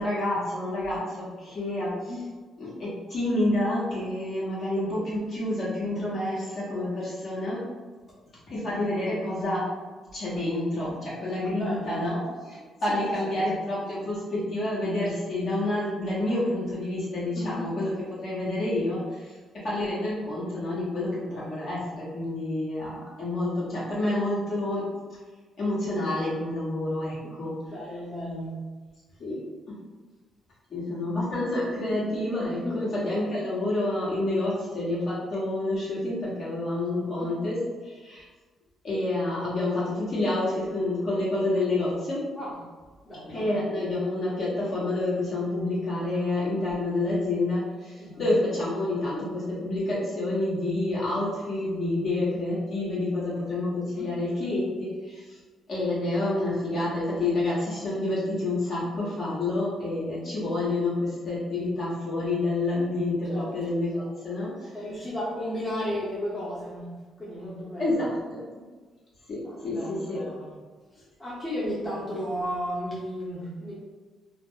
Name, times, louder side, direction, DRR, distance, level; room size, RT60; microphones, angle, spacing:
voice 1, 0.0-2.1 2.6-7.6 8.5-9.7 10.1-17.9 18.2-19.3 19.6-24.9 25.6-27.5 29.2-29.4 29.7-29.8 30.7-38.3 38.8-42.3 43.3-55.4 55.7-64.7 67.8-68.4 69.3-70.2, left 2 dB, 55° left, -8 dB, 1.5 m, -28 dB
voice 2, 11.6-12.1 12.9-13.0 13.3-13.5 17.3-17.7 27.2-27.3 27.7-28.6 32.6-32.8 37.1-37.3 42.4-42.5 43.0-43.5 48.0-48.2 53.9-54.1 63.3-63.5 64.7-66.9 67.2-68.0 69.4-70.5 71.2-73.7, equal, 20° left, -8 dB, 0.9 m, -34 dB
2.9 x 2.1 x 3.8 m, 1.4 s
cardioid pair, 90°, 0 cm